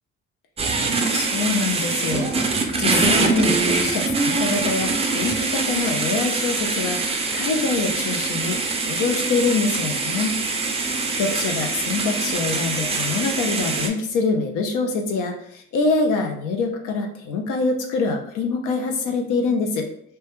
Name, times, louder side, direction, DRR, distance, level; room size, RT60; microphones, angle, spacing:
sound 1, 0.6-13.9, right 3 dB, 20° right, 0.3 m, -24 dB
voice 1, 1.1-8.6 8.8-10.4 10.7-19.9, left 4 dB, 85° left, 3 dB, 0.5 m, -25 dB
2.2 x 2.2 x 2.9 m, 0.66 s
cardioid pair, 90°, 30 cm